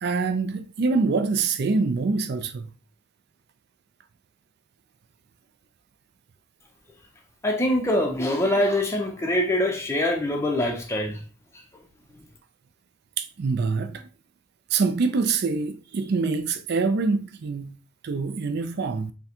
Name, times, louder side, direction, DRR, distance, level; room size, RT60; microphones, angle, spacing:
voice 1, 0.0-2.7 13.2-14.0 14.7-17.8 18.0-19.1, right 4 dB, 50° right, 0.4 m, -25 dB
voice 2, 7.4-11.2, left 1 dB, 15° left, 0.5 m, -24 dB
3.7 x 2.2 x 4.3 m
head